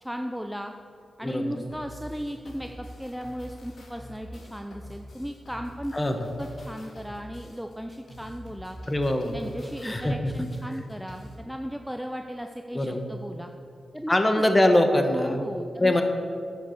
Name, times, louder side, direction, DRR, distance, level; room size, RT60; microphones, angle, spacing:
voice 1, 0.0-0.7 1.2-5.9 6.4-8.8 9.3-13.5 13.9-14.2 15.1-16.0, equal, ahead, 5 dB, 0.5 m, -36 dB
voice 2, 1.2-1.6 5.9-6.2 8.9-9.4 9.8-10.3 12.7-13.1 14.1-15.4 15.8-16.0, left 1 dB, 20° left, 5 dB, 1.2 m, -23 dB
sound 1, 1.7-11.4, equal, 75° left, 2.0 m, -45 dB
10.5 x 6.8 x 6.5 m, 2.5 s
cardioid pair, 80°, 0 cm